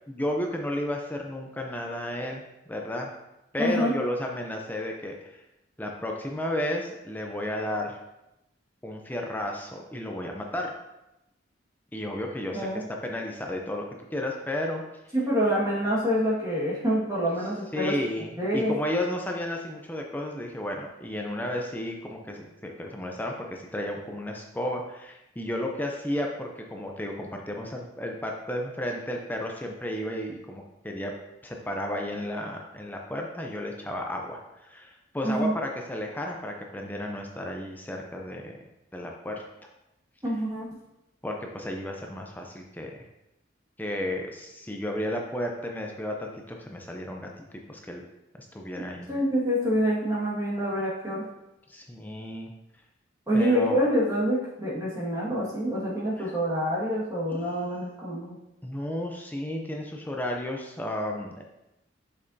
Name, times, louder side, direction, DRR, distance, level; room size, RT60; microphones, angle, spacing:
voice 1, 0.1-2.4 2.7-3.1 3.5-5.4 5.8-8.0 8.8-10.7 11.9-14.8 17.7-31.1 31.4-38.6 38.9-39.4 41.2-43.0 43.8-48.0 48.5-49.1 51.7-52.5 53.3-53.8 56.2-56.3 58.6-61.4, left 1 dB, 10° left, 1 dB, 0.5 m, -33 dB
voice 2, 3.6-3.9 12.5-12.8 15.1-17.9 18.4-18.7 35.2-35.5 40.2-40.8 49.1-51.2 53.3-58.4, equal, 20° right, -6 dB, 1.7 m, -26 dB
6.7 x 5.4 x 2.7 m, 0.90 s
head